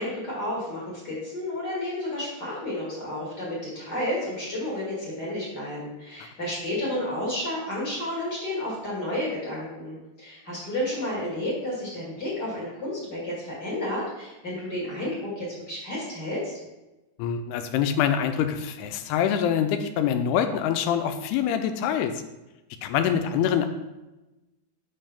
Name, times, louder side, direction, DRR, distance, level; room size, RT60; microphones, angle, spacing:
voice 1, 0.0-16.5, left 1 dB, 35° left, -6 dB, 1.7 m, -31 dB
voice 2, 17.2-22.2 22.8-23.7, left 8 dB, 85° left, 8 dB, 2.5 m, -25 dB
5.4 x 5.4 x 5.7 m, 1.0 s
omnidirectional pair, 4.7 m